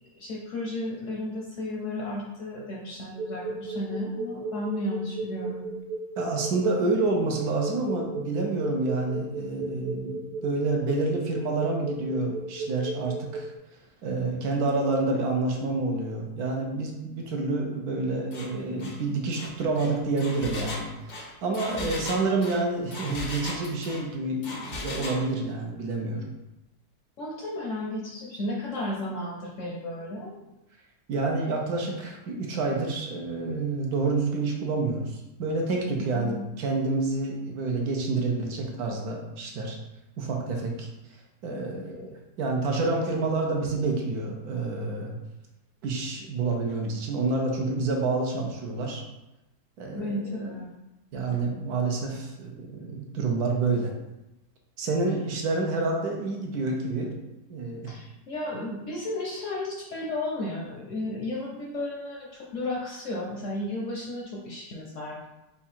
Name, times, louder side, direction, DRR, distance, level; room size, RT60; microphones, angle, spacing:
voice 1, 0.2-5.7 21.8-22.1 27.2-30.3 36.0-36.5 49.9-50.7 57.9-65.3, left 1 dB, 60° left, -2 dB, 0.8 m, -33 dB
sound 1, 3.2-13.5, right 4 dB, 50° right, 1.0 m, -34 dB
voice 2, 6.2-13.5 14.0-26.2 31.1-39.8 40.2-40.9 41.4-45.2 45.8-49.0 49.8-50.5 51.1-53.9 54.8-57.2 57.5-57.9, right 3 dB, 70° right, 0 dB, 1.1 m, -28 dB
Engine, 18.3-18.5 18.8-19.0 19.3-24.0 24.4-25.2, left 2 dB, 85° left, 0.4 m, -37 dB
4.7 x 2.3 x 4.2 m, 0.95 s
omnidirectional pair, 1.8 m